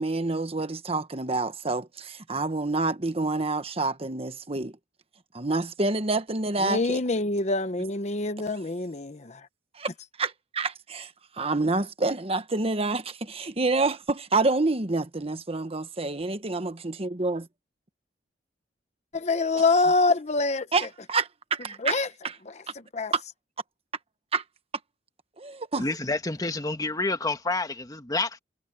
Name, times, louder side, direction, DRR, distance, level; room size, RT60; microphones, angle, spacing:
voice 1, 0.0-4.7 5.3-7.0 9.8-9.9 10.2-11.1 11.4-17.5 20.7-22.0 23.1-23.2 24.3-24.4 25.4-25.9, right 3 dB, 35° right, 1.3 m, -28 dB
voice 2, 6.6-9.4 19.1-20.9 21.8-22.1 22.5-22.6 22.9-23.1, left 3 dB, 40° left, 1.0 m, -25 dB
voice 3, 25.8-28.4, left 2 dB, 20° left, 1.4 m, -28 dB
head